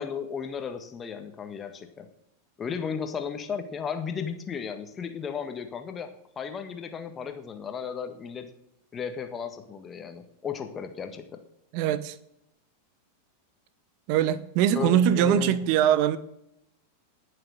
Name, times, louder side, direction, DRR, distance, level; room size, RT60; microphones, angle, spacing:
voice 1, 0.0-2.1 2.6-8.5 8.9-11.4 14.7-15.6, left 6 dB, 20° left, 7 dB, 1.6 m, -35 dB
voice 2, 11.7-12.1 14.1-16.2, right 10 dB, 45° right, 16 dB, 0.9 m, -22 dB
18.5 x 6.8 x 6.5 m, 0.79 s
figure-of-eight pair, 90°, 0 cm